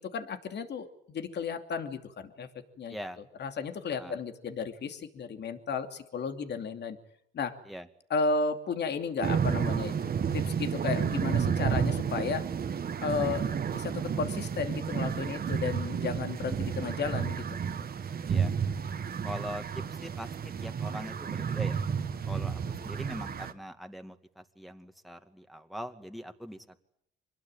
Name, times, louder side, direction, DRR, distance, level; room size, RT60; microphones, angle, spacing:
voice 1, 0.0-3.0 3.4-7.0 7.3-7.5 8.1-12.5 13.0-17.4, left 5 dB, 60° left, 7 dB, 2.8 m, -34 dB
voice 2, 2.9-3.2 3.9-4.2 7.7-7.9 18.3-18.5 19.2-21.8 22.3-26.8, equal, ahead, 6 dB, 2.3 m, -42 dB
sound 1, 9.2-23.5, right 7 dB, 50° right, 1.9 m, -31 dB
25.5 x 21.0 x 9.0 m, 0.72 s
cardioid pair, 90°, 20 cm